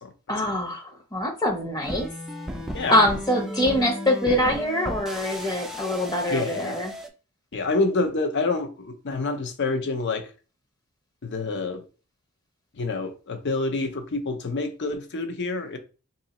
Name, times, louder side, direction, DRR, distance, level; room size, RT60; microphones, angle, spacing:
voice 1, 0.3-2.1 2.9-6.9, left 1 dB, 20° left, 0.8 m, -24 dB
sound 1, 1.8-7.1, equal, ahead, 0.4 m, -35 dB
voice 2, 6.3-6.8 7.5-10.3 11.2-11.8 12.7-15.8, left 3 dB, 55° left, 0.6 m, -27 dB
2.7 x 2.7 x 4.0 m
head